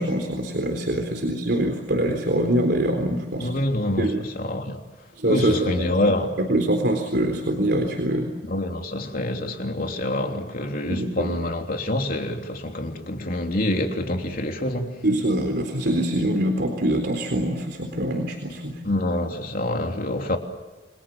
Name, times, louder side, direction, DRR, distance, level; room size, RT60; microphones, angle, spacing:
voice 1, 0.0-3.5 4.0-4.2 5.2-5.9 6.4-8.3 10.8-11.4 15.0-18.8, right 1 dB, 65° right, 4.0 m, -24 dB
voice 2, 3.4-4.1 4.3-4.8 5.3-6.3 8.5-15.0 18.8-20.4, left 1 dB, 55° left, 3.3 m, -26 dB
29.5 x 22.5 x 7.4 m
head